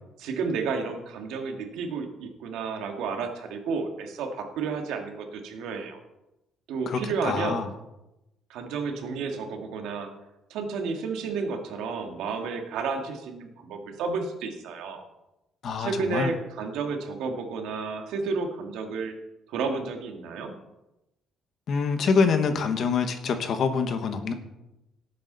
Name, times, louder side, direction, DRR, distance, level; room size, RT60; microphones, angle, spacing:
voice 1, 0.2-6.0 6.7-7.6 8.5-10.1 10.5-15.0 15.8-19.1 19.5-20.5, right 4 dB, 90° right, 4 dB, 2.0 m, -31 dB
voice 2, 6.9-7.7 15.6-16.3 21.7-24.3, left 5 dB, 40° left, 8 dB, 1.2 m, -25 dB
18.0 x 8.6 x 4.0 m, 0.94 s
cardioid pair, 180°, 0 cm